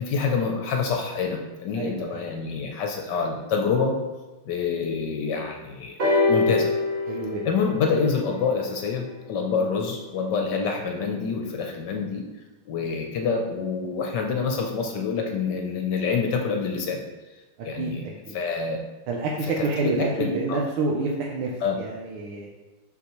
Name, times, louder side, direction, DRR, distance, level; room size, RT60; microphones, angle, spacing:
voice 1, 0.0-3.9 4.5-6.7 7.4-12.2 12.7-17.0 17.6-18.1 18.3-18.8 19.6-20.6 21.6-21.8, left 5 dB, 65° left, 2 dB, 1.1 m, -27 dB
voice 2, 1.8-2.2 7.1-7.5 17.8-18.3 19.1-21.5 21.8-22.5, right 3 dB, 85° right, -2 dB, 1.6 m, -28 dB
sound 1, 6.0-9.8 10.8-10.9, left 3 dB, 60° right, 2.7 m, -26 dB
6.0 x 5.9 x 3.0 m, 1.1 s
omnidirectional pair, 2.3 m